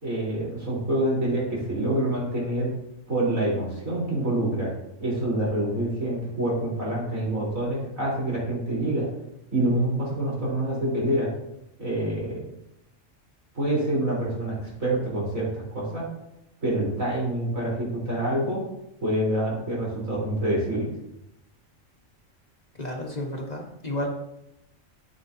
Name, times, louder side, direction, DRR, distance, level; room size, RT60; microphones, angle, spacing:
voice 1, 0.0-2.7 3.1-4.7 5.0-9.1 9.5-11.3 11.8-12.5 13.5-15.5 15.7-16.1 16.6-18.6 19.0-20.9, right 1 dB, 85° right, -5 dB, 4.4 m, -26 dB
voice 2, 22.8-24.1, left 1 dB, 35° left, 0 dB, 1.3 m, -32 dB
13.0 x 7.4 x 2.8 m, 0.84 s
omnidirectional pair, 1.4 m